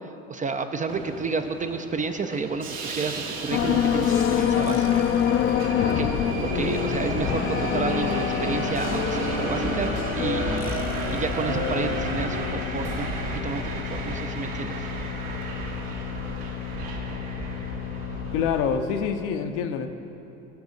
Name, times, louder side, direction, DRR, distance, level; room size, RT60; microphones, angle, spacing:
voice 1, 0.0-5.2 5.8-6.1 6.4-10.7 11.1-13.6 13.9-14.9, right 4 dB, 20° right, 7 dB, 0.5 m, -31 dB
Subway metro underground, 0.9-18.8, right 3 dB, 60° right, 1.6 m, -33 dB
sound 1, 3.5-18.5, left 10 dB, 35° left, 0.5 m, -27 dB
voice 2, 18.3-19.9, left 7 dB, 65° left, 6 dB, 0.9 m, -26 dB
17.5 x 6.2 x 4.0 m, 2.9 s
hypercardioid pair, 65°, 38 cm